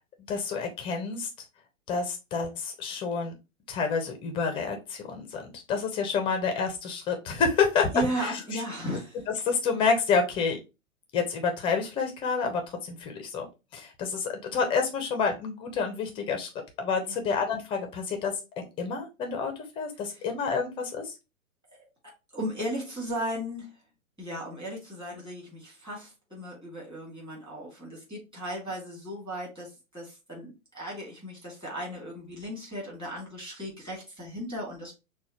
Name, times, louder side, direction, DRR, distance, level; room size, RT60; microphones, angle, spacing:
voice 1, 0.3-1.3 1.9-3.3 3.7-8.6 9.4-10.6 11.1-13.5 13.7-16.5 16.8-21.1, left 5 dB, 15° left, 0.5 m, -29 dB
voice 2, 7.9-9.2 17.1-17.2 20.1-20.2 22.3-23.7 24.2-34.9, right 1 dB, 10° right, 2.4 m, -36 dB
6.0 x 2.2 x 3.0 m
hypercardioid pair, 115°, 42 cm